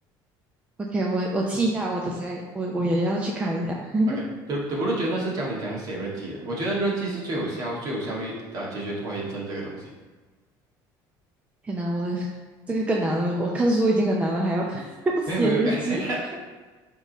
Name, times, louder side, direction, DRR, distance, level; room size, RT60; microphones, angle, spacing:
voice 1, 0.9-4.2 11.6-12.3 12.7-16.0, right 1 dB, 15° right, -1 dB, 0.6 m, -25 dB
voice 2, 4.5-9.9 15.3-16.3, right 2 dB, 45° right, -4 dB, 2.1 m, -29 dB
8.5 x 3.8 x 4.2 m, 1.3 s
cardioid pair, 160°, 9 cm